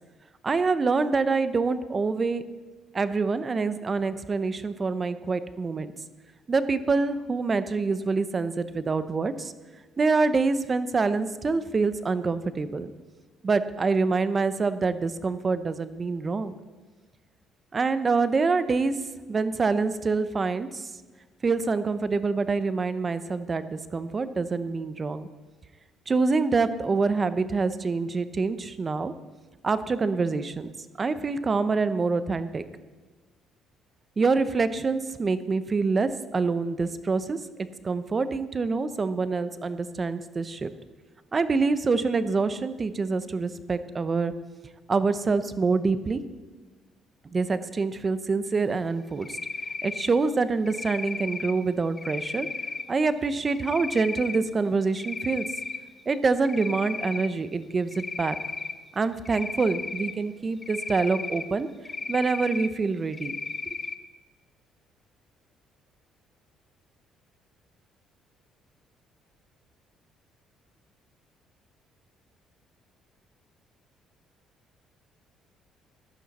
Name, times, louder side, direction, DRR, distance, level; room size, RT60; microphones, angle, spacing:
voice 1, 0.4-2.4 2.9-5.9 6.5-9.5 10.0-12.9 13.4-16.6 17.7-19.0 19.3-20.9 21.4-25.3 26.1-29.1 29.6-30.7 31.0-32.6 34.2-40.7 41.3-44.3 44.9-46.2 47.3-49.4 49.8-52.5 52.9-55.5 56.1-58.4 59.0-61.7 62.1-63.4, right 4 dB, 35° right, 13 dB, 0.8 m, -26 dB
Cricket, 49.2-50.1 50.7-51.5 52.0-52.8 53.5-54.4 54.8-55.8 56.1-57.3 57.9-58.7 59.2-60.1 60.6-61.4 61.8-62.7 63.1-63.9, left 4 dB, 25° left, 0.9 m, -34 dB
15.0 x 12.0 x 4.2 m, 1.3 s
cardioid pair, 90°, 0 cm